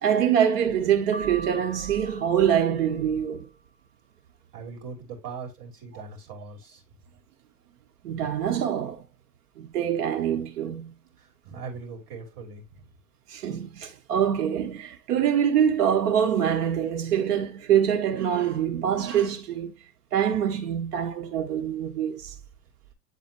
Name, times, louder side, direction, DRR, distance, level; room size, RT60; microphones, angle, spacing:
voice 1, 0.0-3.5 8.0-9.0 9.6-10.9 13.3-19.7 20.1-22.3, right 9 dB, 75° right, 1.2 m, -25 dB
Piano, 1.1-3.3, right 2 dB, 15° right, 1.2 m, -41 dB
voice 2, 4.5-6.8 11.2-12.8, right 5 dB, 50° right, 3.2 m, -40 dB
8.3 x 4.1 x 2.8 m
hypercardioid pair, 110°, 47 cm